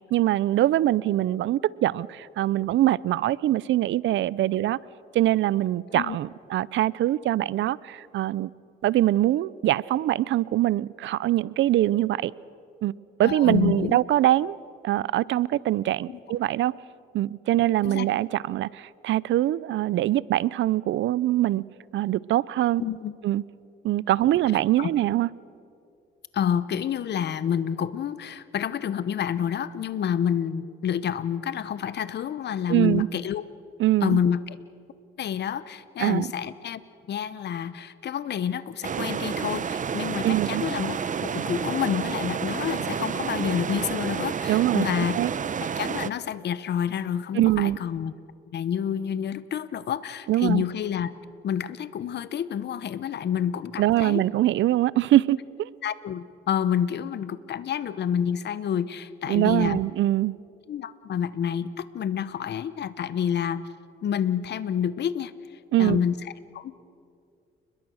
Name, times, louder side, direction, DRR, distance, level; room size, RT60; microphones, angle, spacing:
voice 1, 0.1-4.8 5.1-8.5 8.8-12.3 12.8-12.9 13.2-14.6 14.8-16.7 17.1-21.6 21.9-22.8 23.2-23.4 23.8-25.3 32.7-33.1 33.8-34.2 36.0-36.3 40.2-40.6 44.5-44.8 45.2-45.3 47.3-47.8 50.3-50.6 53.8-55.7 59.3-60.3 65.7-66.0, right 14 dB, 70° right, 0.6 m, -23 dB
voice 2, 13.2-14.0 16.1-16.2 17.9-18.1 22.8-23.1 24.8-24.9 26.3-33.5 34.0-34.6 35.2-36.8 37.1-45.2 45.6-48.1 48.5-51.1 51.4-54.2 55.8-59.8 60.7-63.7 64.0-65.3 65.8-66.7, left 8 dB, 60° left, 1.0 m, -28 dB
sound 1, 38.8-46.1, right 7 dB, 40° right, 0.8 m, -30 dB
30.0 x 21.5 x 6.4 m
cardioid pair, 90°, 20 cm